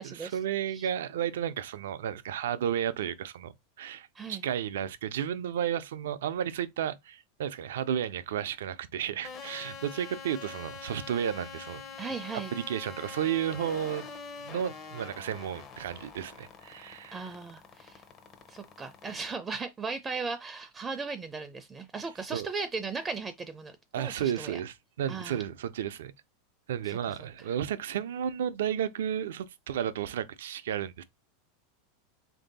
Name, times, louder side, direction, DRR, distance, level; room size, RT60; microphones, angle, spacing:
voice 1, 0.0-11.8 12.5-14.1 14.4-17.3 22.3-22.5 23.9-26.1 26.7-31.0, right 9 dB, 80° right, 0.4 m, -33 dB
sound 1, 9.2-19.4, left 5 dB, 40° left, 0.7 m, -45 dB
voice 2, 12.0-12.5 17.1-18.0 18.5-24.6 25.1-25.4 26.9-27.0, right 4 dB, 20° right, 0.4 m, -37 dB
3.2 x 2.7 x 3.9 m
hypercardioid pair, 110°, 0 cm